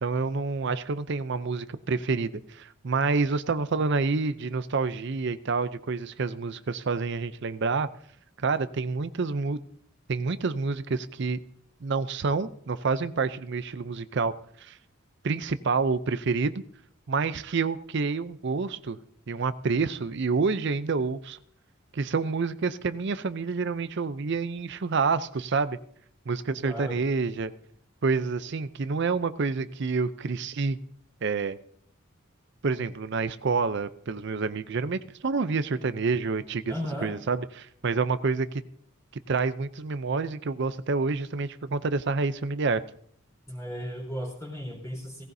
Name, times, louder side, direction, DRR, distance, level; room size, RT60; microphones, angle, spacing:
voice 1, 0.0-7.9 8.4-9.6 10.1-11.4 11.8-14.3 14.6-14.8 15.2-16.6 17.1-19.0 19.3-21.4 21.9-25.8 26.3-27.5 28.0-30.8 31.2-31.6 32.6-36.7 37.0-38.6 39.3-42.8, right 4 dB, 55° right, 13 dB, 0.5 m, -28 dB
voice 2, 26.6-27.0 36.7-37.2 43.5-45.2, equal, 15° left, -3 dB, 3.8 m, -35 dB
17.5 x 16.5 x 2.7 m, 0.64 s
head